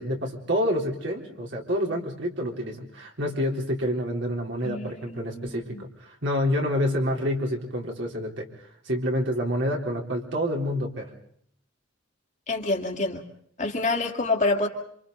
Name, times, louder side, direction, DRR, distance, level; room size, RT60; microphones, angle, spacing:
voice 1, 0.0-8.5 8.9-11.1, equal, 65° right, 0 dB, 3.6 m, -28 dB
voice 2, 4.6-5.8 12.5-13.2 13.6-14.7, left 2 dB, 40° left, 2 dB, 2.3 m, -27 dB
27.5 x 26.5 x 3.9 m, 0.68 s
head